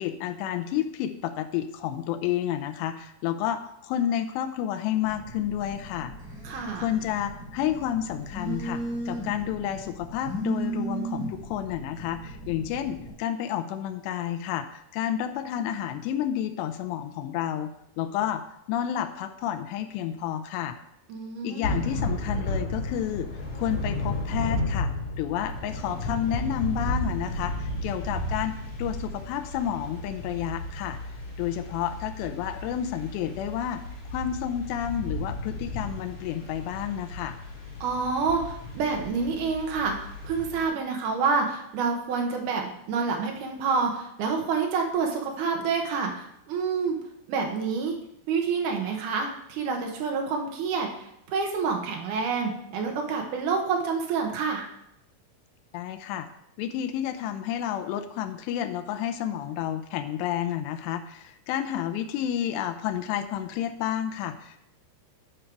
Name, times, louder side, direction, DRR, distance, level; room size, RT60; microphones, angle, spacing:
voice 1, 0.0-6.1 6.8-18.4 18.7-20.8 21.4-23.3 23.6-24.9 25.2-31.0 31.4-33.8 34.1-37.4 55.7-56.3 56.6-64.7, left 10 dB, 85° left, 7 dB, 2.6 m, -30 dB
Telephone, 5.0-13.1, right 2 dB, 35° right, 3.5 m, -36 dB
voice 2, 6.4-6.9 21.1-21.8 37.8-47.0 47.3-48.0 48.3-54.7, right 5 dB, 75° right, 2 dB, 1.9 m, -28 dB
Thunder / Rain, 21.6-40.7, left 1 dB, 45° left, 5.0 m, -33 dB
11.0 x 5.2 x 4.6 m, 0.77 s
omnidirectional pair, 5.2 m